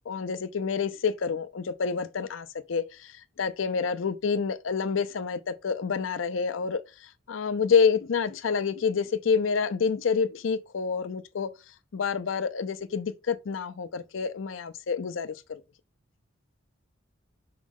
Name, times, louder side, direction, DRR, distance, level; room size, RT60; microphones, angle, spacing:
voice 1, 0.1-3.1 3.4-6.8 7.3-11.5 11.9-15.6, left 5 dB, 80° left, 0.5 m, -28 dB
6.2 x 4.7 x 3.6 m
head